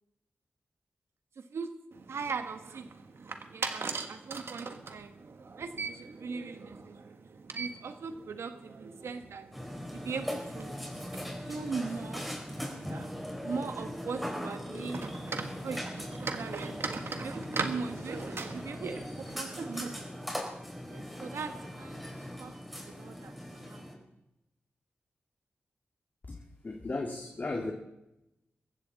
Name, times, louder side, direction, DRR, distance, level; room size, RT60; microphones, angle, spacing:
voice 1, 1.4-2.9 3.5-5.1 5.6-7.2 7.5-9.5 9.9-10.8 11.5-12.3 13.4-15.0 15.6-16.8 17.2-20.1 20.9-22.0 22.4-22.6 22.9-23.9, right 5 dB, 85° right, 1.2 m, -40 dB
sound 1, 1.9-19.9, right 4 dB, 70° right, 1.6 m, -42 dB
Burping eructation, 9.5-23.9, equal, ahead, 4.8 m, -40 dB
voice 2, 26.3-27.7, left 2 dB, 45° left, 2.0 m, -36 dB
21.5 x 15.0 x 4.1 m
cardioid pair, 60°, 4 cm